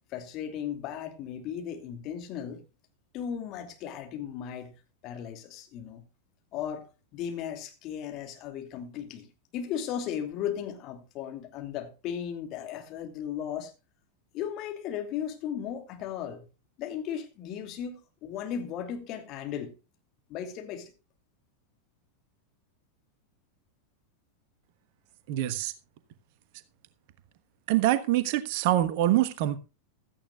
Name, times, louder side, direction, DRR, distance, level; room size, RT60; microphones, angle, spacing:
voice 1, 0.1-2.6 3.1-4.7 5.0-6.0 6.5-6.9 7.1-9.3 9.5-13.7 14.3-16.4 16.8-19.7 20.3-20.9, left 9 dB, 40° left, 2.7 m, -36 dB
voice 2, 25.3-25.7 27.7-29.6, right 14 dB, 50° right, 1.2 m, -25 dB
16.5 x 13.5 x 2.4 m
figure-of-eight pair, 90°, 0 cm